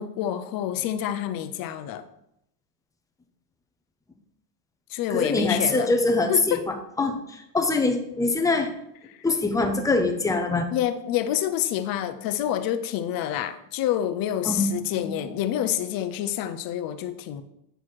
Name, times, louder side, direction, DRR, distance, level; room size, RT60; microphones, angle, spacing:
voice 1, 0.0-2.0 4.9-5.9 6.3-6.6 9.1-9.2 10.7-17.4, left 11 dB, 45° left, 10 dB, 0.7 m, -28 dB
voice 2, 5.1-6.6 7.0-8.7 9.2-10.7 14.4-14.7 15.0-15.2, left 3 dB, 5° left, 4 dB, 0.6 m, -23 dB
9.0 x 4.1 x 4.7 m, 0.78 s
cardioid pair, 145°, 50 cm